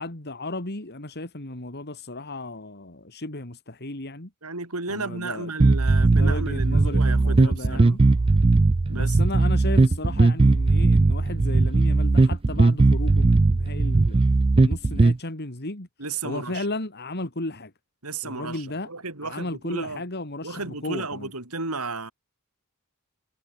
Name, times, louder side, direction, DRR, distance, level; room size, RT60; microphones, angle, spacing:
voice 1, 0.0-4.3 4.9-5.5 6.1-8.0 8.9-14.2 14.5-15.9 16.2-17.7 18.2-18.9 19.2-21.3, left 2 dB, 50° left, 3.0 m, -34 dB
voice 2, 4.4-8.0 8.9-9.2 16.0-16.7 18.0-20.0 20.4-22.1, right 3 dB, 80° right, 5.9 m, -33 dB
sound 1, 5.6-15.2, right 3 dB, 25° right, 0.4 m, -19 dB
head